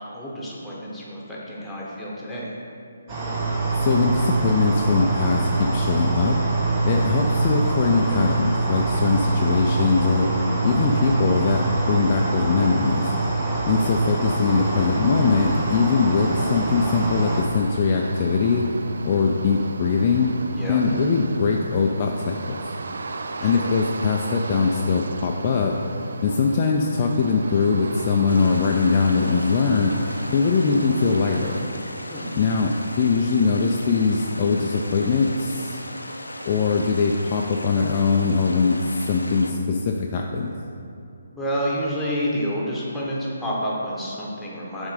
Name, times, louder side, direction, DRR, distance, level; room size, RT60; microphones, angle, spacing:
voice 1, 0.1-2.5 13.4-13.9 20.5-20.8 23.4-23.8 32.1-32.4 41.3-44.9, equal, 5° left, -6 dB, 1.2 m, -29 dB
sound 1, 3.1-17.4, right 3 dB, 30° right, 1.1 m, -24 dB
voice 2, 3.7-6.4 6.8-10.3 10.6-13.1 13.7-18.7 19.0-20.3 20.7-22.6 23.4-25.7 26.2-29.9 30.3-31.6 32.4-35.8 36.5-40.5, left 4 dB, 35° left, 0 dB, 0.4 m, -21 dB
sound 2, 14.5-31.6, right 3 dB, 60° right, 0.4 m, -36 dB
sound 3, 28.3-39.5, left 1 dB, 85° left, 0.6 m, -37 dB
7.1 x 3.6 x 5.2 m, 2.5 s
figure-of-eight pair, 140°, 0 cm